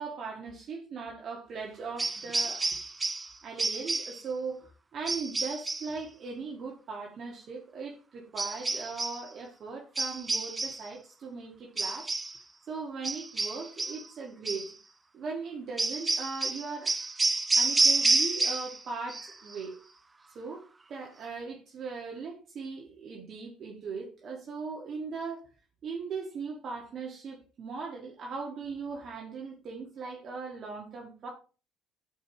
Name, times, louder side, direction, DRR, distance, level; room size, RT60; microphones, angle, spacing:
voice 1, 0.0-2.8 3.4-12.1 12.7-14.8 15.1-16.9 17.5-19.8 20.4-20.6 20.9-25.5 25.8-31.3, right 4 dB, 55° right, 1.7 m, -39 dB
sound 1, 2.0-3.3 3.6-4.2 5.1-5.9 8.4-9.2 10.0-10.9 11.8-12.4 13.0-14.1 14.5-14.7 15.8-18.8 19.1-19.6, right 3 dB, 25° right, 0.6 m, -29 dB
9.4 x 5.6 x 3.0 m
hypercardioid pair, 60°, 0 cm